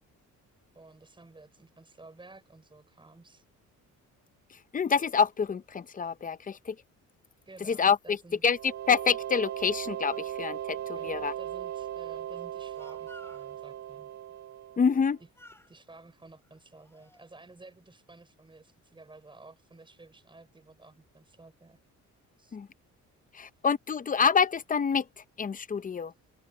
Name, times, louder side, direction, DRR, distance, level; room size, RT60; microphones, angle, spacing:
voice 1, 0.7-3.4 7.5-8.4 10.9-14.1 15.2-15.3 15.7-21.8 22.4-22.6, right 3 dB, 15° right, 5.8 m, -53 dB
voice 2, 4.7-6.7 7.7-8.0 8.4-8.6 8.9-10.8 11.0-11.3 14.8-15.2 22.5-22.7 23.4-25.0 25.4-26.1, left 6 dB, 25° left, 0.6 m, -26 dB
sound 1, 8.5-15.1, right 11 dB, 60° right, 0.8 m, -38 dB
Speech, 12.7-13.5 14.8-15.1 15.3-15.7 16.4-17.3, left 1 dB, 10° left, 3.1 m, -55 dB
cardioid pair, 130°, 31 cm